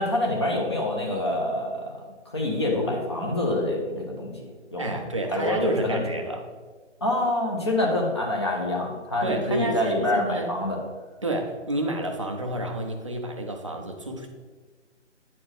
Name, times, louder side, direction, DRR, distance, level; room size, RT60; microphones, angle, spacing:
voice 1, 0.0-1.9 2.3-4.5 4.7-5.0 5.3-6.0 7.0-10.8, left 1 dB, 25° left, -1 dB, 0.6 m, -26 dB
voice 2, 4.8-6.4 9.2-10.5 11.2-14.3, right 1 dB, 30° right, 3 dB, 0.4 m, -29 dB
8.8 x 4.3 x 3.2 m, 1.4 s
figure-of-eight pair, 150°, 36 cm